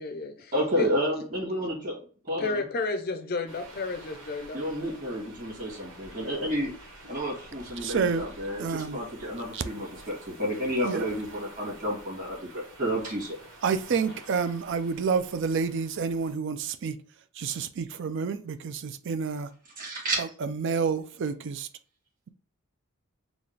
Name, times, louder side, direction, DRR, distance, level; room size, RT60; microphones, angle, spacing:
voice 1, 0.0-0.9 2.4-5.0, left 3 dB, 45° left, 0.5 m, -32 dB
voice 2, 0.5-2.0 2.2-2.6 4.5-13.4 19.8-20.2, equal, 35° right, 1.8 m, -31 dB
sound 1, 3.5-16.3, right 1 dB, 85° right, 1.7 m, -49 dB
voice 3, 7.8-8.3 8.6-9.0 9.5-9.6 10.8-11.0 13.6-17.0 17.4-19.5 20.2-21.7, right 5 dB, 55° right, 0.4 m, -29 dB
4.1 x 2.3 x 3.3 m
head